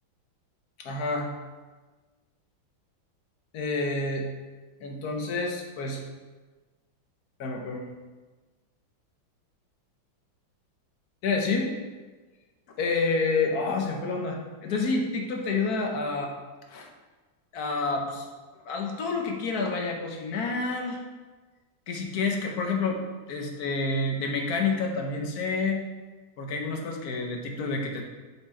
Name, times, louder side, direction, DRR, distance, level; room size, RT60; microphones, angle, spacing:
voice 1, 0.8-1.3 3.5-4.3 4.8-6.0 7.4-7.9 11.2-11.7 12.8-16.3 16.7-16.9 17.5-18.2 18.7-21.0 21.9-23.0 23.3-25.8 26.4-28.0, left 3 dB, 60° left, 2 dB, 1.3 m, -28 dB
6.8 x 5.0 x 4.3 m, 1.3 s
omnidirectional pair, 2.2 m